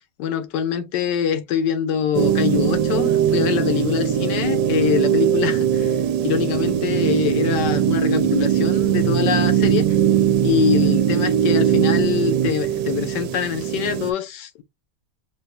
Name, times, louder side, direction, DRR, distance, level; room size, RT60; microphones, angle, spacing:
voice 1, 0.2-6.0 6.2-9.9 10.4-14.6, left 8 dB, 80° left, 1.3 m, -24 dB
sound 1, 2.1-14.1, right 10 dB, 85° right, 1.3 m, -20 dB
5.9 x 2.2 x 2.7 m
omnidirectional pair, 1.9 m